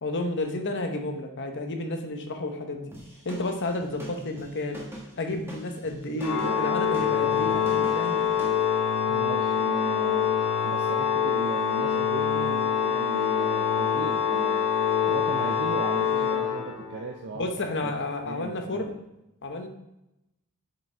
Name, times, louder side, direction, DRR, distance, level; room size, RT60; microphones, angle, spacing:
voice 1, 0.0-2.9 3.2-4.8 5.2-8.2 17.3-18.9 19.4-19.7, left 2 dB, 55° left, 5 dB, 0.9 m, -31 dB
sound 1, 2.9-8.6, right 1 dB, 10° right, 1.3 m, -43 dB
Organ, 6.2-17.1, left 8 dB, 90° left, 0.8 m, -25 dB
voice 2, 9.1-10.3 10.6-14.7 15.0-17.9 18.2-18.9, right 3 dB, 50° right, 1 dB, 0.5 m, -37 dB
7.3 x 5.2 x 3.3 m, 0.90 s
head